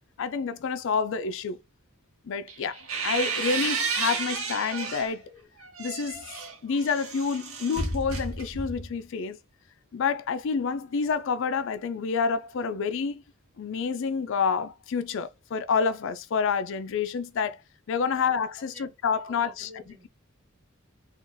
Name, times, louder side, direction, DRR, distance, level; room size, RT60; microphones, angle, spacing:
voice 1, 0.2-1.6 2.3-5.4 5.8-6.2 6.6-9.4 9.9-13.2 13.6-17.6 17.9-19.7, left 5 dB, 65° left, 0.4 m, -28 dB
sound 1, 2.5-5.1 5.6-8.9, right 4 dB, 75° right, 1.1 m, -32 dB
voice 2, 18.0-19.0 19.2-20.1, left 1 dB, 30° right, 1.3 m, -50 dB
3.8 x 2.4 x 2.6 m
head